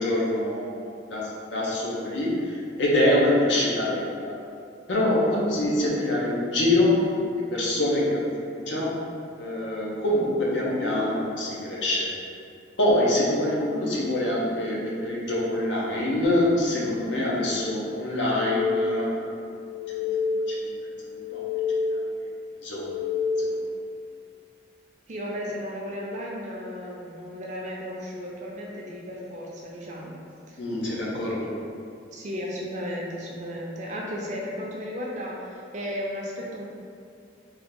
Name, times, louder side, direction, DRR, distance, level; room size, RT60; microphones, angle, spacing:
voice 1, 0.0-4.4 4.9-7.1 7.5-9.0 9.4-12.1 12.8-19.3 20.5-20.6 21.1-21.4 21.9-22.0 22.6-23.0 23.4-23.7 30.6-31.6, left 1 dB, 80° left, -5 dB, 0.8 m, -25 dB
sound 1, 18.1-19.2 19.6-20.7 21.1-22.2 22.6-23.8, left 4 dB, 30° left, 0.3 m, -28 dB
voice 2, 25.1-30.2 30.5-30.6 32.1-36.7, equal, 40° right, -3 dB, 0.5 m, -34 dB
3.5 x 2.7 x 3.7 m, 2.4 s
head